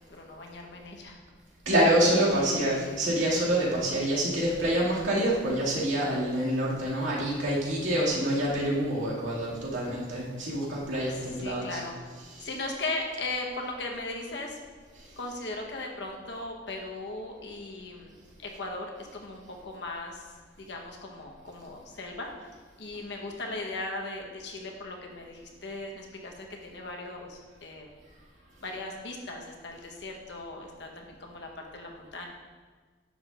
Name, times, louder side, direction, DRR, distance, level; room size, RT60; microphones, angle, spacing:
voice 1, 0.1-1.2 2.1-3.0 11.1-12.1 12.4-14.6 15.2-22.5 22.8-27.9 28.6-32.3, left 2 dB, 65° left, 1 dB, 1.1 m, -38 dB
voice 2, 1.7-11.8 12.2-12.6 14.9-15.1, right 1 dB, 90° right, -6 dB, 2.2 m, -27 dB
10.5 x 7.2 x 2.5 m, 1.4 s
head